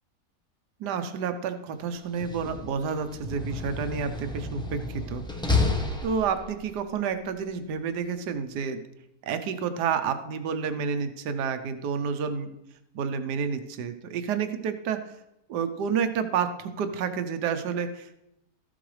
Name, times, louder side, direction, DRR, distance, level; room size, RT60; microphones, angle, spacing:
voice 1, 0.8-5.2 6.0-8.8 9.2-12.5 12.9-15.1 15.5-18.2, right 6 dB, 80° right, 9 dB, 1.3 m, -30 dB
Slam, 2.0-6.7, left 3 dB, 5° left, 0.4 m, -30 dB
13.5 x 7.8 x 3.2 m, 0.83 s
omnidirectional pair, 1.7 m